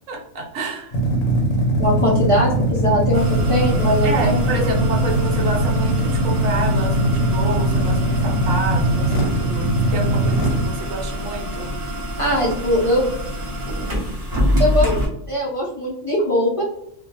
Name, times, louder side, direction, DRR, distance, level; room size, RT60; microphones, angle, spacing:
voice 1, 0.1-1.0 4.0-11.7, right 3 dB, 75° right, 1 dB, 1.0 m, -28 dB
sound 1, 0.9-10.7, right 1 dB, 80° left, 1.0 m, -20 dB
voice 2, 1.8-4.5 12.2-13.1 14.6-16.6, equal, 35° left, -6 dB, 0.5 m, -21 dB
sound 2, 3.1-15.1, equal, 40° right, 1.0 m, -26 dB
2.4 x 2.2 x 2.9 m, 0.75 s
omnidirectional pair, 1.4 m